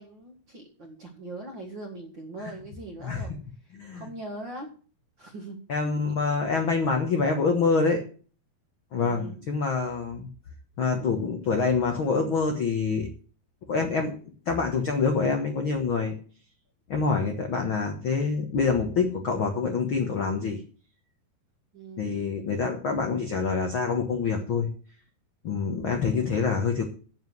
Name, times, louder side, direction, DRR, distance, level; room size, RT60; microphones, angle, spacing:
voice 1, 0.0-3.3 3.6-4.7 5.2-6.1 9.0-9.4 21.7-22.2, right 2 dB, 45° right, 2 dB, 1.7 m, -41 dB
voice 2, 5.7-8.0 8.9-10.3 10.8-13.1 13.7-14.1 14.5-16.1 16.9-20.6 22.0-24.7 25.4-26.8, left 4 dB, 75° left, 4 dB, 1.1 m, -26 dB
9.0 x 7.3 x 7.8 m, 0.40 s
omnidirectional pair, 4.5 m